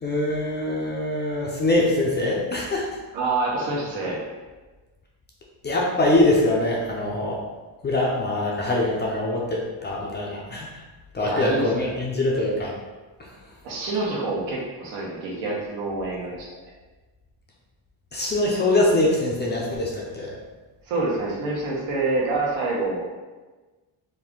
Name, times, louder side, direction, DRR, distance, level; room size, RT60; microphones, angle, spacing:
voice 1, 0.0-2.9 5.6-7.4 7.8-10.7 11.1-12.7 18.1-20.4, left 2 dB, 25° left, -3 dB, 0.4 m, -23 dB
voice 2, 3.1-4.2 11.2-11.9 13.6-16.5 20.9-23.1, right 2 dB, 80° right, -3 dB, 1.3 m, -27 dB
4.4 x 2.5 x 3.6 m, 1.3 s
cardioid pair, 170°, 46 cm